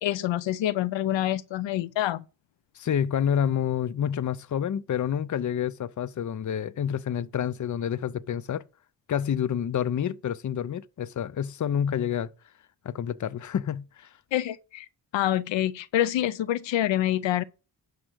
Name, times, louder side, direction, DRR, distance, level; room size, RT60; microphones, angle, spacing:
voice 1, 0.0-2.2 14.3-14.9 15.1-17.4, left 12 dB, 90° left, 0.7 m, -26 dB
voice 2, 2.8-8.6 9.1-12.3 12.8-14.1, left 9 dB, 45° left, 0.6 m, -28 dB
11.5 x 4.9 x 6.2 m
cardioid pair, 65°, 44 cm